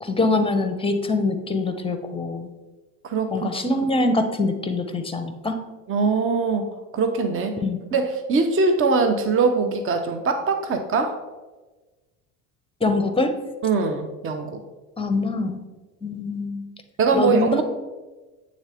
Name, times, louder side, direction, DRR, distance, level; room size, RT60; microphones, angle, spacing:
voice 1, 0.0-2.5 3.3-5.6 7.6-7.8 12.8-13.4 15.0-15.7 16.0-16.6 17.1-17.6, left 2 dB, 10° left, 7 dB, 0.8 m, -24 dB
voice 2, 3.0-3.6 5.9-7.6 7.9-11.2 13.6-14.6 17.0-17.6, right 4 dB, 30° right, 7 dB, 0.7 m, -22 dB
8.8 x 3.7 x 3.4 m, 1.2 s
hypercardioid pair, 75°, 45 cm